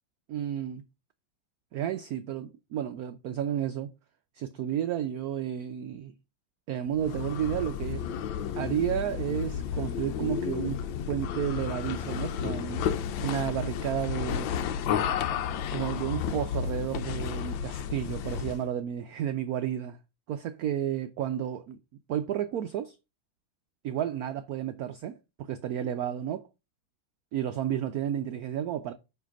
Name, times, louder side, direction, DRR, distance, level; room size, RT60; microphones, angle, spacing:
voice 1, 0.3-0.8 1.7-3.9 4.3-6.1 6.7-8.0 8.5-10.8 11.1-14.5 15.7-20.0 20.3-21.8 22.1-23.0 23.8-26.5 27.3-28.9, right 10 dB, 85° right, 0.8 m, -32 dB
sound 1, 6.9-18.7, left 8 dB, 75° left, 1.3 m, -32 dB
7.4 x 3.3 x 5.1 m
omnidirectional pair, 2.2 m